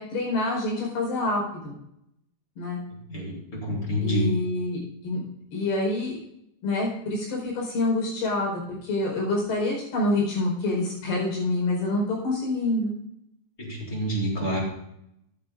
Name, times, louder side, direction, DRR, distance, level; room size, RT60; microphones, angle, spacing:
voice 1, 0.0-1.8 2.6-2.8 4.0-5.2 5.5-6.2 6.6-12.9, left 2 dB, 85° left, -2 dB, 6.6 m, -27 dB
voice 2, 3.1-4.3 13.6-14.6, equal, 20° left, -3 dB, 4.0 m, -28 dB
14.5 x 10.5 x 2.6 m, 0.77 s
omnidirectional pair, 4.4 m